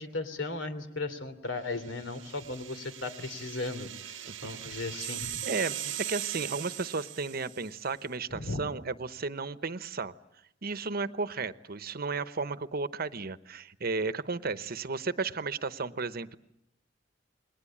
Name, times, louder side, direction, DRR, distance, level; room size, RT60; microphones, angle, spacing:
voice 1, 0.0-5.3 8.3-8.6, left 3 dB, 80° left, 10 dB, 3.0 m, -36 dB
sound 1, 1.9-7.8, right 11 dB, 80° right, 1.0 m, -40 dB
voice 2, 4.3-4.7 5.4-10.1 10.6-16.4, right 4 dB, 55° right, 13 dB, 0.9 m, -34 dB
28.5 x 21.5 x 8.6 m, 0.80 s
head